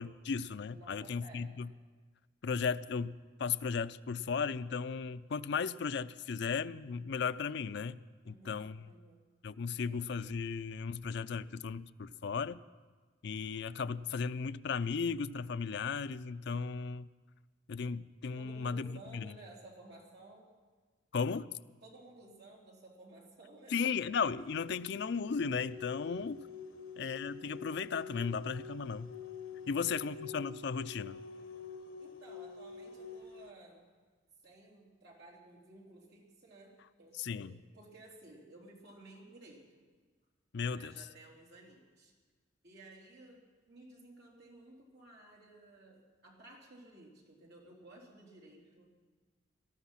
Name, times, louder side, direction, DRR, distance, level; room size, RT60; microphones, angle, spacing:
voice 1, 0.0-1.7 2.4-8.0 8.3-8.9 9.4-12.6 13.2-17.1 17.7-19.3 21.1-21.5 23.7-26.5 27.0-29.1 29.7-31.2 37.2-37.5 40.5-40.9, left 5 dB, 60° left, 12 dB, 0.4 m, -36 dB
voice 2, 0.7-1.5 8.2-9.2 9.8-10.0 18.4-20.5 21.8-23.8 26.7-27.0 29.5-30.0 32.0-33.8 34.4-39.8 40.7-42.1 42.6-48.9, right 2 dB, 55° right, -3 dB, 3.7 m, -56 dB
sound 1, 24.4-33.5, left 5 dB, 90° left, 0.9 m, -47 dB
19.0 x 13.0 x 5.7 m, 1.4 s
head